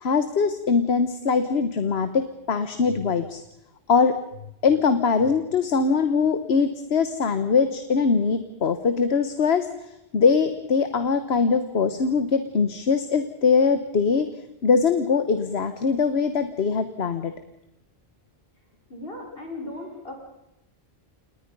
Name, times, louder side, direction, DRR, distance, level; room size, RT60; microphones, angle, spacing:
voice 1, 0.0-3.4 3.9-4.2 4.6-9.7 10.1-14.3 14.6-17.3, left 5 dB, 80° left, 10 dB, 1.4 m, -22 dB
voice 2, 18.9-20.1, left 2 dB, 65° left, 2 dB, 4.9 m, -36 dB
28.5 x 19.5 x 5.4 m, 0.83 s
omnidirectional pair, 1.0 m